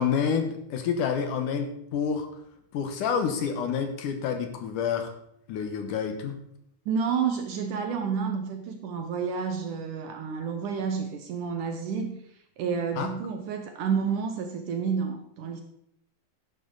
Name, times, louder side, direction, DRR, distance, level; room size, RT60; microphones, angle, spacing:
voice 1, 0.0-2.3 2.7-5.1 5.5-6.4 13.0-13.1, left 7 dB, 65° left, 6 dB, 2.2 m, -28 dB
voice 2, 6.9-15.6, right 6 dB, 75° right, 5 dB, 1.9 m, -30 dB
12.5 x 11.0 x 3.9 m, 0.74 s
omnidirectional pair, 4.7 m